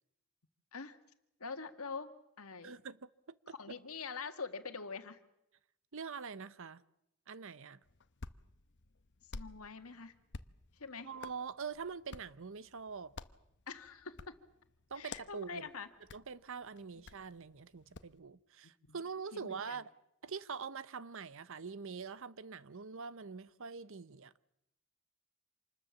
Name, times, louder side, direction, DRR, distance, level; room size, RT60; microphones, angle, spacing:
voice 1, 1.4-2.7 3.5-5.2 9.3-10.1 10.8-11.1 13.7-14.4 14.9-15.9 17.0-17.1 18.9-19.0 19.3-19.8, left 4 dB, 75° left, 1.8 m, -45 dB
voice 2, 2.6-3.8 5.9-6.8 7.3-7.8 11.0-13.1 14.9-15.7 16.1-19.9 20.2-24.3, right 5 dB, 65° right, 0.8 m, -44 dB
Hands, 7.8-18.2, left 3 dB, 55° left, 0.9 m, -53 dB
27.0 x 20.5 x 7.2 m
head